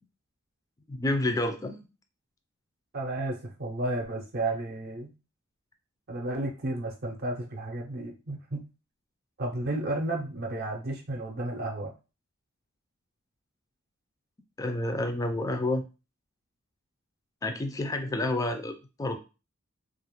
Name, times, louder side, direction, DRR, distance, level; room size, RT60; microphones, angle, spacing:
voice 1, 0.9-1.9 14.6-15.8 17.4-19.2, left 2 dB, 15° left, 6 dB, 0.3 m, -29 dB
voice 2, 2.9-5.1 6.1-8.6 9.4-11.9, right 2 dB, 50° right, 1 dB, 0.5 m, -32 dB
2.4 x 2.1 x 2.9 m, 0.30 s
head